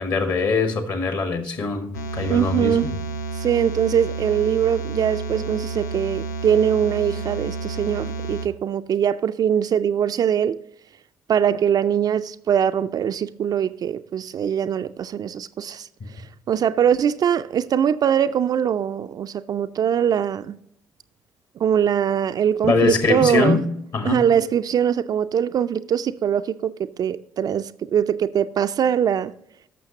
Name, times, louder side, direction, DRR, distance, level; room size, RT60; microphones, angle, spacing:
voice 1, 0.0-2.9 22.6-23.6 23.9-24.2, left 4 dB, 50° left, 1.6 m, -22 dB
sound 1, 1.9-8.5, right 3 dB, 90° left, 0.5 m, -30 dB
voice 2, 2.3-2.9 3.4-10.6 11.3-15.9 16.5-20.6 21.6-23.6 24.0-26.7 27.0-29.3, right 8 dB, 45° right, 0.4 m, -22 dB
14.5 x 6.3 x 2.8 m
hypercardioid pair, 50°, 9 cm